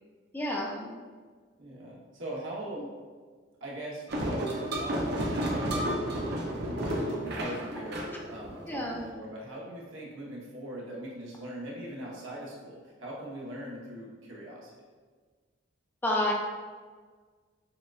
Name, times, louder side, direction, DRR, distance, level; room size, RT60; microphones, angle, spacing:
voice 1, 0.3-0.9 8.7-9.1 16.0-16.3, left 1 dB, 10° left, -1 dB, 0.4 m, -29 dB
voice 2, 1.6-2.9 3.6-14.7, right 1 dB, 75° right, -4 dB, 1.0 m, -41 dB
sound 1, 4.1-9.0, right 1 dB, 55° right, 0.6 m, -32 dB
6.8 x 2.3 x 2.4 m, 1.5 s
head